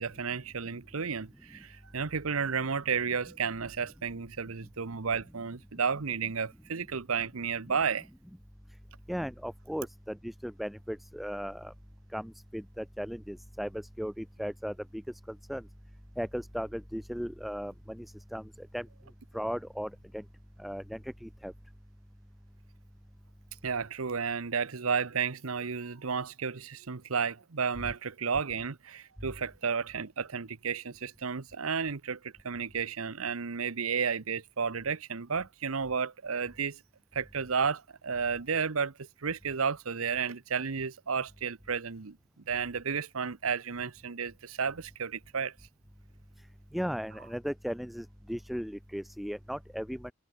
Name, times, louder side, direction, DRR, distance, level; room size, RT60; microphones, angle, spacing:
voice 1, 0.0-8.1 23.6-36.8 37.1-42.2 42.5-45.5, right 6 dB, 85° right, 0.9 m, -32 dB
voice 2, 9.1-11.7 12.1-15.7 16.2-18.9 19.3-20.2 20.6-21.5 46.7-50.1, equal, ahead, 0.3 m, -37 dB
head